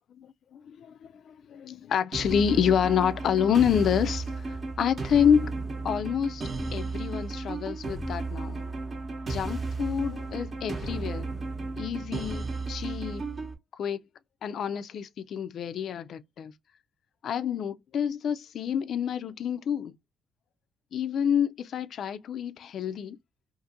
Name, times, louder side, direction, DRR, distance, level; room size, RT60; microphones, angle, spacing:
voice 1, 0.1-0.9 1.3-5.5 5.8-6.4 6.7-8.6 9.3-11.3 11.8-13.2 13.8-14.0 14.4-16.5 17.2-19.9 20.9-23.2, left 8 dB, 65° left, 0.3 m, -28 dB
sound 1, 2.1-13.5, right 3 dB, 40° right, 0.8 m, -34 dB
2.5 x 2.5 x 2.6 m
cardioid pair, 90°, 0 cm